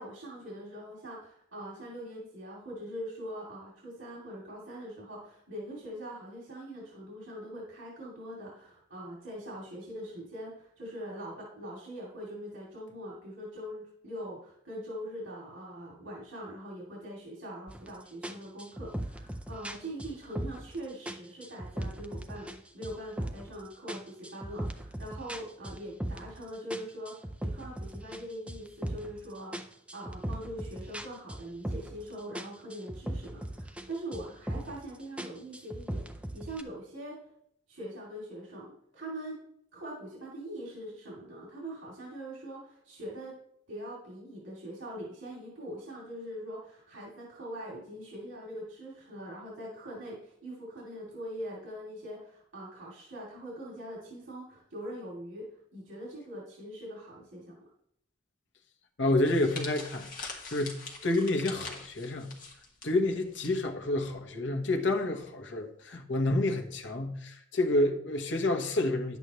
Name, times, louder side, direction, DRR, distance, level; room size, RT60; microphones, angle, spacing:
voice 1, 0.0-37.2 37.7-39.4 39.7-43.3 43.7-55.5 55.7-57.7, equal, 90° right, -4 dB, 2.6 m, -42 dB
sound 1, 17.7-17.9 18.2-20.8 21.1-22.6 22.8-23.5 23.9-26.4 26.7-29.2 29.5-32.1 32.3-33.9 34.1-34.8 35.2-36.6, right 1 dB, 5° right, 0.5 m, -38 dB
voice 2, 59.0-60.8 61.0-62.3 62.8-69.2, left 2 dB, 70° left, 4 dB, 1.2 m, -29 dB
sound 2, 59.2-63.5 63.8-64.0 64.9-65.2, left 4 dB, 45° left, 1.6 m, -44 dB
10.5 x 8.2 x 3.1 m, 0.71 s
head